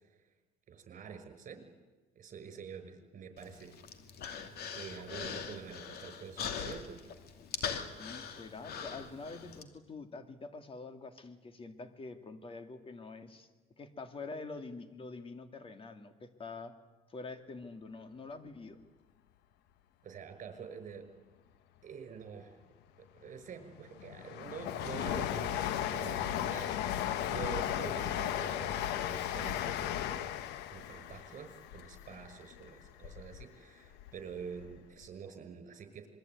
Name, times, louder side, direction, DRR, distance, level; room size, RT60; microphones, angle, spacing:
voice 1, 0.7-1.7 2.2-3.8 4.7-7.0 20.0-21.0 21.8-22.6 23.1-30.5 30.7-36.1, right 6 dB, 50° right, 8 dB, 5.8 m, -46 dB
Human voice, 3.4-9.6, left 7 dB, 70° left, 2.7 m, -41 dB
voice 2, 7.7-13.5 13.8-16.7 17.1-18.8, left 3 dB, 35° left, 8 dB, 2.5 m, -46 dB
Train, 23.3-33.4 33.9-34.8 35.0-35.1, left 11 dB, 90° left, 1.2 m, -36 dB
27.0 x 22.0 x 9.5 m, 1.3 s
cardioid pair, 110°, 17 cm